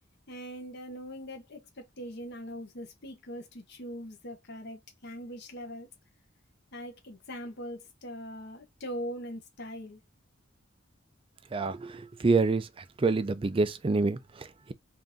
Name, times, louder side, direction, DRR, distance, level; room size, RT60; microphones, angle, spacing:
voice 1, 0.3-5.9 6.7-10.0, equal, 55° left, 0.9 m, -41 dB
voice 2, 11.5-12.7 13.0-14.7, right 3 dB, 25° right, 0.4 m, -27 dB
3.9 x 2.6 x 3.5 m
head